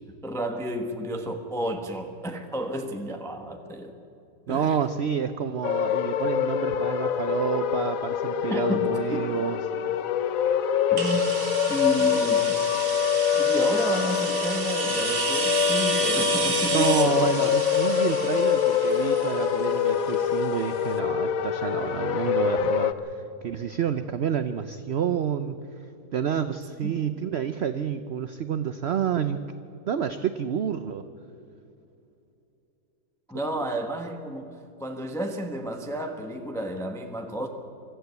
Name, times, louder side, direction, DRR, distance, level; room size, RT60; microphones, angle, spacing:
voice 1, 0.2-3.9 4.5-4.8 8.5-9.3 10.9-12.6 13.3-17.2 26.8-26.9 33.3-37.5, right 1 dB, ahead, 4 dB, 1.0 m, -31 dB
voice 2, 4.5-9.6 16.7-25.6 26.1-29.4 29.9-31.1, right 8 dB, 60° right, 10 dB, 0.7 m, -29 dB
sound 1, 5.6-22.9, left 8 dB, 60° left, 1.2 m, -25 dB
sound 2, 11.0-20.6, right 4 dB, 35° right, 1.5 m, -31 dB
24.5 x 14.0 x 8.1 m, 2.7 s
omnidirectional pair, 1.7 m